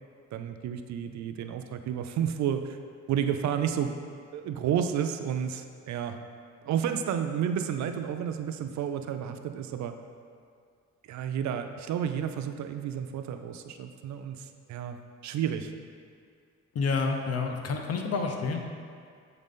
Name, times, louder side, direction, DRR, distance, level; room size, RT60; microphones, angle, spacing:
voice 1, 0.3-2.8 3.1-3.9 4.3-6.2 6.6-9.9 11.1-15.0 15.2-15.7, right 8 dB, 65° right, 7 dB, 0.5 m, -31 dB
voice 2, 16.7-18.6, left 4 dB, 55° left, 3 dB, 0.8 m, -29 dB
7.3 x 3.9 x 3.6 m, 2.2 s
cardioid pair, 90°, 30 cm